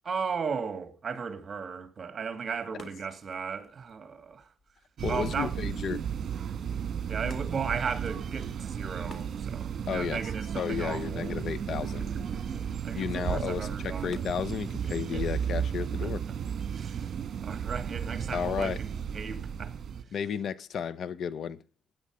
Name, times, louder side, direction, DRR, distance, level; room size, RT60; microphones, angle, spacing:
voice 1, 0.0-4.5 5.1-5.5 7.1-11.4 11.8-12.6 12.8-14.2 14.9-15.3 16.0-16.1 16.7-17.1 17.4-19.8 20.1-20.2, right 6 dB, 40° right, 2.5 m, -36 dB
sound 1, 2.2-19.3, left 3 dB, 35° left, 3.5 m, -58 dB
voice 2, 5.0-6.0 9.9-10.2 10.5-12.0 12.9-16.2 18.3-18.8 20.1-21.6, left 7 dB, 60° left, 0.8 m, -33 dB
sound 2, 5.0-20.0, right 8 dB, 55° right, 1.7 m, -34 dB
16.0 x 10.0 x 5.0 m
cardioid pair, 90°, 0 cm